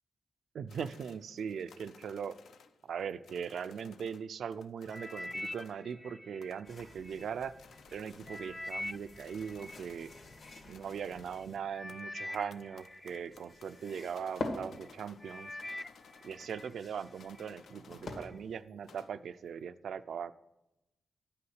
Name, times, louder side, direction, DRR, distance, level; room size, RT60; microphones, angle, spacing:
voice 1, 0.5-2.3 2.8-7.5 7.9-10.1 10.7-15.5 16.2-20.3, right 7 dB, 80° right, 14 dB, 0.4 m, -40 dB
sound 1, 0.7-4.3 4.5-5.9 6.4-6.8 7.2-7.3 7.5-10.4 10.7-15.3 15.6-16.8 17.2-18.4 18.7-19.2, left 6 dB, 85° left, 0.6 m, -59 dB
sound 2, 4.9-7.2 7.8-10.6 11.3-11.4 11.7-14.1 14.6-14.9 15.2-16.7 17.1-17.5 18.1-18.2, left 1 dB, 15° left, 0.4 m, -44 dB
sound 3, 6.6-11.6 12.6-18.6, left 2 dB, 70° left, 1.9 m, -47 dB
10.0 x 5.7 x 7.9 m, 0.93 s
cardioid pair, 100°, 0 cm